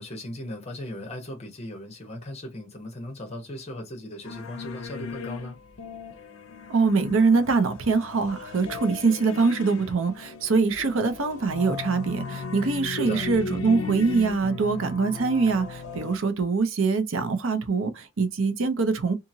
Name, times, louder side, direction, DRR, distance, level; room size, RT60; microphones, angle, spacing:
voice 1, 0.0-5.6 13.0-13.3, equal, 30° left, 0.9 m, -37 dB
sound 1, 4.2-16.2, left 5 dB, 75° left, 0.5 m, -37 dB
voice 2, 6.7-19.2, right 4 dB, 70° right, 0.6 m, -24 dB
2.8 x 2.5 x 2.6 m
head